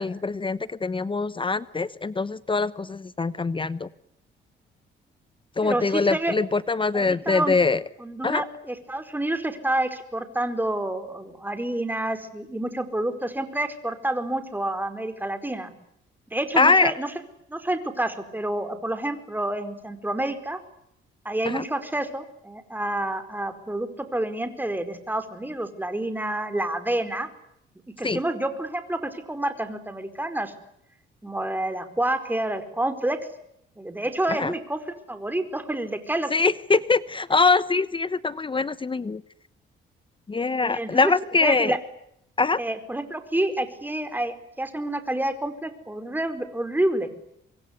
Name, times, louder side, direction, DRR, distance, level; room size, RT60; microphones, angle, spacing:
voice 1, 0.0-3.9 5.6-7.8 8.2-8.4 16.6-16.9 21.5-21.6 28.0-28.2 34.4-34.5 36.3-39.2 40.3-41.7 42.4-42.6, left 4 dB, 25° left, 16 dB, 1.0 m, -23 dB
voice 2, 5.6-6.3 6.9-7.6 8.0-15.7 16.3-17.1 17.5-20.6 21.2-27.3 28.0-30.5 31.2-33.2 33.8-36.3 40.6-41.1 41.4-41.8 42.6-47.1, right 1 dB, 10° right, 9 dB, 4.9 m, -28 dB
26.5 x 22.5 x 9.8 m, 0.76 s
cardioid pair, 90°, 20 cm